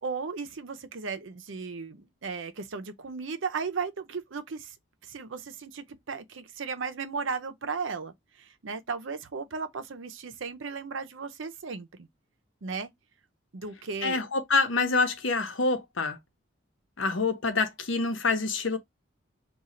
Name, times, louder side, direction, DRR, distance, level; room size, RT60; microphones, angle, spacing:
voice 1, 0.0-4.7 5.1-12.1 12.6-12.9 13.5-14.2, right 5 dB, 75° right, 0.6 m, -35 dB
voice 2, 14.0-16.2 17.0-18.8, left 3 dB, 80° left, 0.9 m, -26 dB
3.7 x 2.4 x 4.2 m
head